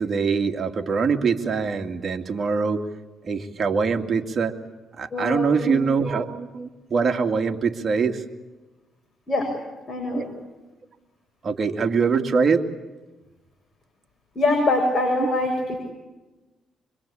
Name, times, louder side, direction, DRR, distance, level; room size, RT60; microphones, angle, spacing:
voice 1, 0.0-2.9 3.2-4.6 4.9-8.2 10.1-10.2 11.4-12.7 15.2-15.3, right 5 dB, 45° right, 4 dB, 2.2 m, -23 dB
voice 2, 5.1-5.8 9.3-9.5 9.9-10.3 14.3-15.8, left 2 dB, 35° left, 2 dB, 6.4 m, -24 dB
25.0 x 23.5 x 8.6 m, 1.2 s
cardioid pair, 90°, 0 cm